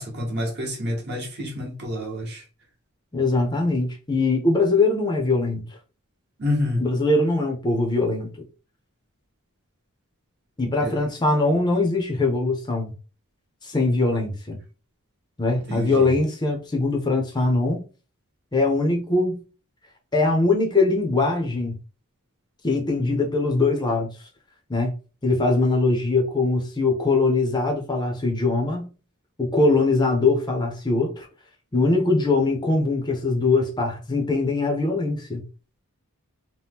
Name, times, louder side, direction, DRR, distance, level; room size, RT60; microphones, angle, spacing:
voice 1, 0.0-2.4 6.4-6.8 10.8-11.0 15.7-16.1, left 1 dB, 50° right, 1.0 m, -28 dB
voice 2, 3.1-5.6 6.8-8.3 10.6-12.9 13.6-14.6 15.4-17.8 18.5-19.4 20.1-21.8 22.6-24.1 24.7-24.9 25.2-28.9 29.4-31.3 31.7-35.4, left 3 dB, 20° left, 0.6 m, -22 dB
2.8 x 2.1 x 3.4 m
head